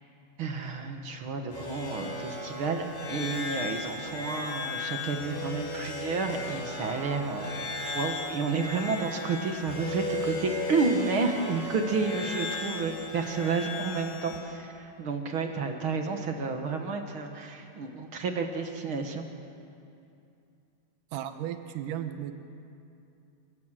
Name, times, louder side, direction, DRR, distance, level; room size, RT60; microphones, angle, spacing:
voice 1, 0.4-7.6 8.0-19.3, right 4 dB, 50° right, 4 dB, 1.7 m, -31 dB
sound 1, 1.5-14.4, left 2 dB, 80° left, 6.9 m, -36 dB
voice 2, 21.1-22.3, right 11 dB, 75° right, 8 dB, 2.6 m, -35 dB
28.5 x 16.0 x 7.6 m, 2.6 s
omnidirectional pair, 3.9 m